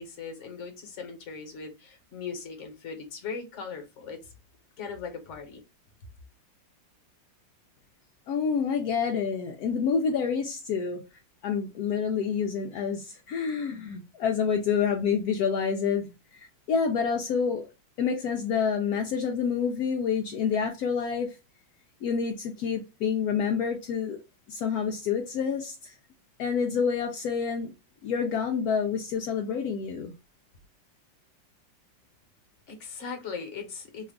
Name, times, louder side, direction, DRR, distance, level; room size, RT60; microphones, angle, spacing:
voice 1, 0.0-4.2 4.8-5.6 32.7-34.1, left 5 dB, 45° left, 1.1 m, -39 dB
voice 2, 8.3-11.1 11.4-17.7 18.0-21.3 22.0-24.2 24.5-25.9 26.4-27.7 28.0-30.1, left 6 dB, 75° left, 0.9 m, -28 dB
3.1 x 2.3 x 3.5 m
omnidirectional pair, 2.0 m